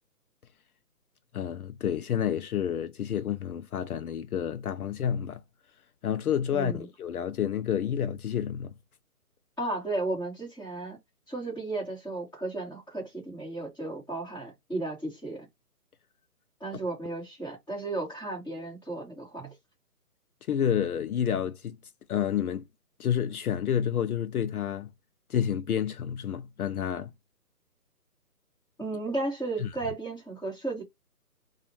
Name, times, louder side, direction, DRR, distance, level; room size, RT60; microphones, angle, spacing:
voice 1, 1.3-5.4 6.0-8.7 20.5-21.8 22.1-22.7 23.0-24.9 25.3-27.1 29.6-29.7, left 9 dB, 70° left, 0.5 m, -29 dB
voice 2, 6.5-6.8 9.6-11.0 11.3-15.4 16.6-19.5 28.8-30.8, right 2 dB, 5° left, 1.6 m, -34 dB
4.0 x 2.5 x 2.9 m
hypercardioid pair, 165°, 46 cm